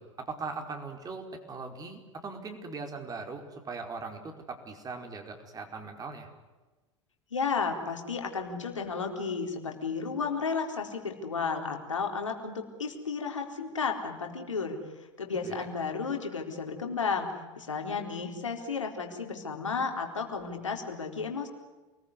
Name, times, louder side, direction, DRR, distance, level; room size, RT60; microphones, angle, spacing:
voice 1, 0.0-6.3 15.4-15.7, right 4 dB, 25° right, 4 dB, 5.0 m, -40 dB
voice 2, 7.3-21.5, left 5 dB, 80° left, 3 dB, 4.1 m, -33 dB
28.5 x 21.0 x 9.9 m, 1.2 s
figure-of-eight pair, 85°, 16 cm